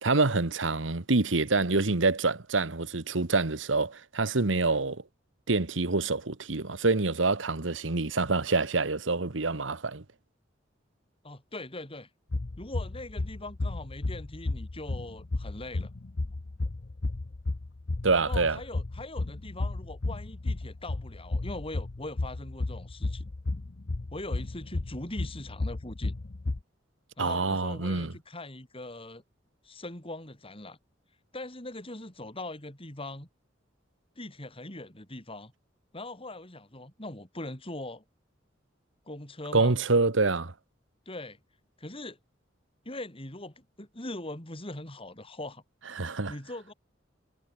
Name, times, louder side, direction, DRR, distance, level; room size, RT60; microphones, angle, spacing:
voice 1, 0.0-5.0 5.5-10.0 18.0-18.6 27.2-28.1 39.5-40.5 46.0-46.3, right 3 dB, 90° right, 1.5 m, -26 dB
voice 2, 11.2-12.1 12.6-15.9 18.1-23.3 24.1-26.1 27.2-29.2 29.6-30.8 31.3-33.3 34.2-35.5 35.9-38.0 39.0-39.8 41.0-41.4 41.8-42.2 42.8-45.6 46.0-46.7, left 2 dB, 30° left, 4.8 m, -41 dB
sound 1, 12.3-26.6, left 2 dB, 55° left, 0.8 m, -33 dB
head